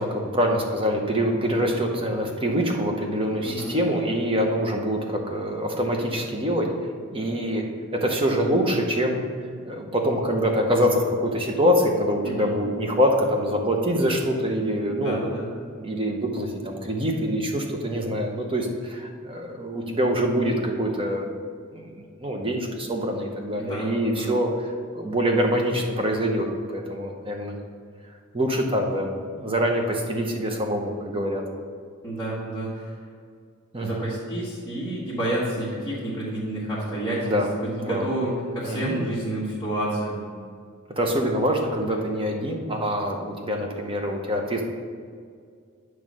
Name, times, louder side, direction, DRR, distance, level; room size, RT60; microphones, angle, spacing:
voice 1, 0.0-6.7 7.1-7.6 7.9-9.2 9.6-15.2 15.8-21.3 21.7-24.5 24.9-27.5 28.3-29.1 29.4-31.4 33.7-34.0 37.2-37.5 37.8-38.0 38.6-39.0 41.0-44.6, equal, 25° right, 2 dB, 0.8 m, -25 dB
voice 2, 3.4-3.7 12.2-12.6 15.0-15.5 23.6-24.3 32.0-33.0 33.8-40.2, right 1 dB, 15° left, -10 dB, 1.4 m, -29 dB
8.9 x 3.2 x 6.2 m, 2.1 s
head